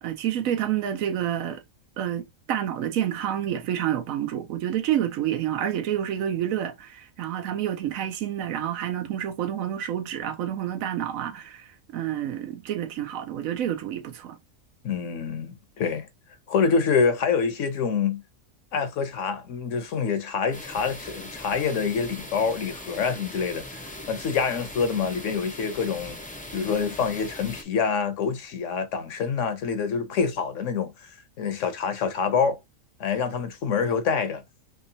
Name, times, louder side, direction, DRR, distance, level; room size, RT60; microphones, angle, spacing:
voice 1, 0.0-1.6 2.0-14.4, right 10 dB, 85° right, 1.1 m, -29 dB
voice 2, 14.8-16.1 16.5-18.2 18.7-23.8 24.1-26.2 26.5-30.9 31.4-32.6 33.0-34.4, left 5 dB, 70° left, 1.0 m, -26 dB
sound 1, 20.5-27.6, left 1 dB, 10° left, 0.4 m, -40 dB
3.6 x 3.1 x 2.7 m
omnidirectional pair, 1.4 m